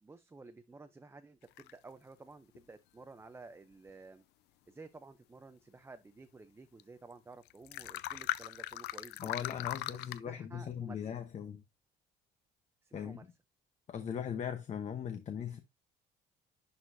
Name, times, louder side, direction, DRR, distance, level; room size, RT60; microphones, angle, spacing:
voice 1, 0.0-4.2 4.7-9.5 10.2-11.0 12.8-13.3, right 3 dB, 15° right, 0.6 m, -53 dB
sound 1, 1.6-1.7 2.5-2.6 6.8-6.9 7.1-7.2 7.5-10.2, left 16 dB, 80° left, 0.4 m, -39 dB
voice 2, 9.2-11.6 12.9-13.2 13.9-15.6, left 8 dB, 45° left, 1.0 m, -39 dB
11.0 x 4.1 x 2.6 m
cardioid pair, 110°, 17 cm